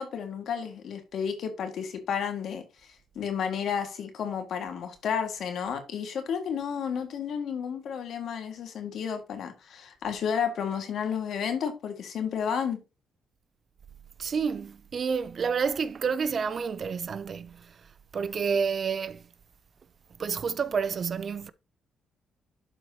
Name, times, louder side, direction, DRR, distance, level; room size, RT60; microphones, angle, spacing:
voice 1, 0.0-2.6 3.1-12.8, left 7 dB, 65° left, 1.8 m, -32 dB
voice 2, 14.2-17.7 18.1-19.2 20.2-21.5, right 6 dB, 45° right, 0.5 m, -29 dB
11.5 x 4.6 x 2.8 m
cardioid pair, 90°, 0 cm